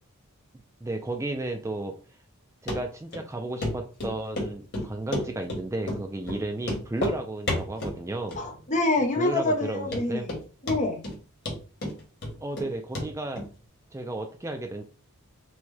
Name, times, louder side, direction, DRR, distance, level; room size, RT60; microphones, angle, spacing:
voice 1, 0.8-1.9 2.6-8.4 9.2-10.3 12.4-13.4 13.9-14.8, right 2 dB, 15° right, 0.3 m, -33 dB
Run, 2.7-2.8 3.1-3.2 3.6-3.7 4.0-4.5 4.7-5.6 5.9-6.0 6.3-6.4 6.6-7.2 7.5-8.0 8.3-8.8 9.0-9.1 9.6-9.7 9.9-10.4 10.7-11.2 11.5-12.7 12.9-13.1 13.4-13.5, left 1 dB, 50° left, 1.4 m, -30 dB
voice 2, 8.3-10.4 10.6-11.0, left 2 dB, 35° left, 0.7 m, -26 dB
6.1 x 2.2 x 3.2 m
head